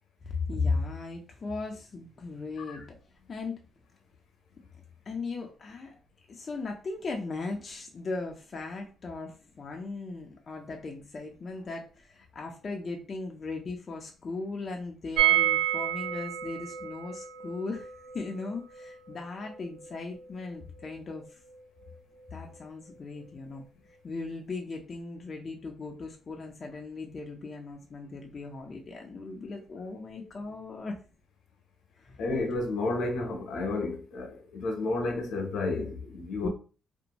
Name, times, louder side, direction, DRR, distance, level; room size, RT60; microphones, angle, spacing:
voice 1, 0.2-3.0 3.3-3.6 5.1-6.0 6.3-21.4 22.3-23.6 24.0-31.0 31.9-32.2 36.4-36.5, left 3 dB, 40° left, 0.4 m, -37 dB
sound 1, 15.2-20.9 21.2-21.3 21.5-21.6, right 12 dB, 85° right, 0.5 m, -30 dB
voice 2, 32.2-36.5, left 2 dB, 75° left, 0.7 m, -31 dB
2.5 x 2.1 x 2.8 m
cardioid pair, 90°, 0 cm